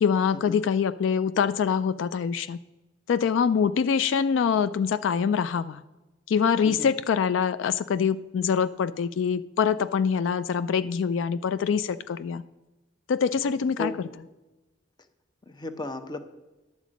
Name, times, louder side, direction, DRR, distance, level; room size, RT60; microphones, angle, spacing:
voice 1, 0.0-2.6 3.1-5.8 6.3-12.4 13.1-13.9, left 6 dB, 75° left, 14 dB, 0.3 m, -24 dB
voice 2, 15.5-16.2, left 1 dB, 25° left, 9 dB, 0.7 m, -34 dB
10.0 x 7.4 x 5.0 m, 1.1 s
head